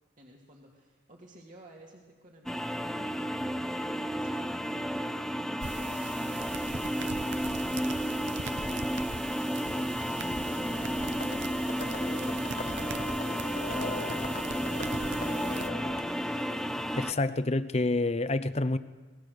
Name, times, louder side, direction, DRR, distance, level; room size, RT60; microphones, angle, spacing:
voice 1, 0.2-12.9, right 1 dB, 45° right, 2.5 m, -54 dB
sound 1, 2.5-17.1, equal, 5° left, 0.7 m, -32 dB
sound 2, 5.6-15.7, right 5 dB, 70° right, 1.0 m, -42 dB
Livestock farm animals working animals, 10.2-16.0, left 2 dB, 55° left, 1.9 m, -41 dB
voice 2, 17.0-18.8, left 2 dB, 35° left, 0.8 m, -28 dB
26.0 x 19.5 x 6.6 m
head